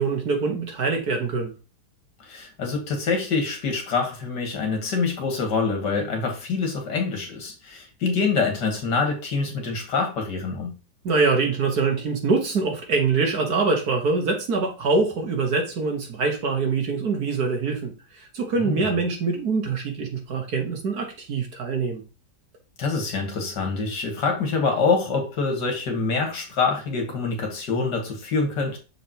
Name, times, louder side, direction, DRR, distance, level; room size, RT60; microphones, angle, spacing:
voice 1, 0.0-1.5 11.0-22.0, right 4 dB, 60° right, 2.0 m, -24 dB
voice 2, 2.2-10.7 18.6-18.9 22.8-28.8, left 4 dB, 70° left, 2.2 m, -25 dB
6.5 x 5.0 x 2.9 m
omnidirectional pair, 1.9 m